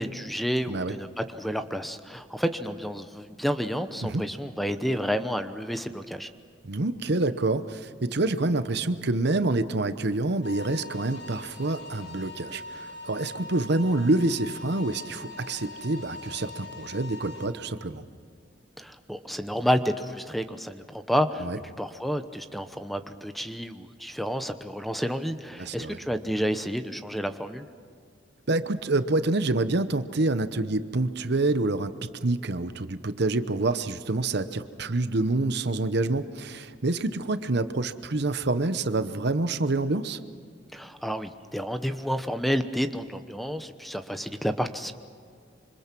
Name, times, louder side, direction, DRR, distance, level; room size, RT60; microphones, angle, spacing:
voice 1, 0.0-6.3 18.8-27.7 40.7-44.9, equal, ahead, 9 dB, 0.9 m, -30 dB
voice 2, 6.6-18.0 21.4-21.6 25.6-26.0 28.5-40.2, right 2 dB, 60° right, 11 dB, 0.9 m, -27 dB
sound 1, 10.4-17.5, left 2 dB, 80° left, 5.9 m, -42 dB
26.5 x 25.5 x 6.1 m, 2.1 s
head